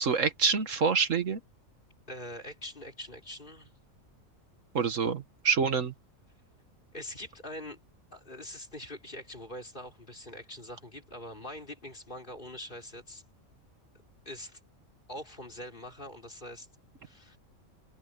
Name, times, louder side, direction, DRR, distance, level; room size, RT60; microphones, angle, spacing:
voice 1, 0.0-1.4 4.7-5.9, right 5 dB, 70° right, 1.7 m, -26 dB
voice 2, 2.1-3.7 6.9-7.8 8.1-13.2 14.2-14.6 15.1-16.7 17.0-17.4, left 1 dB, 40° left, 5.1 m, -43 dB
omnidirectional pair, 1.4 m